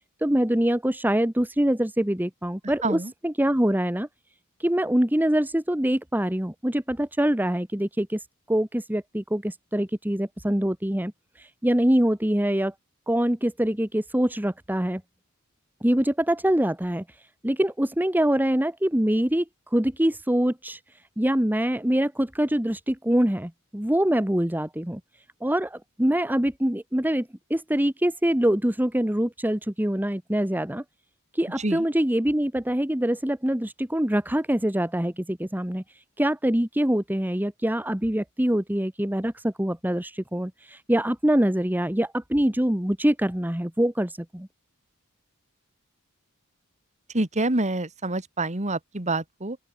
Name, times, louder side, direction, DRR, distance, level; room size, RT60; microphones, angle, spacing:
voice 1, 0.2-4.1 4.6-12.7 13.1-15.0 15.8-17.0 17.4-20.8 21.2-25.0 25.4-30.8 31.3-35.8 36.2-44.5, right 1 dB, 10° right, 1.3 m, -24 dB
voice 2, 47.1-49.6, right 2 dB, 35° right, 2.3 m, -27 dB
open air
head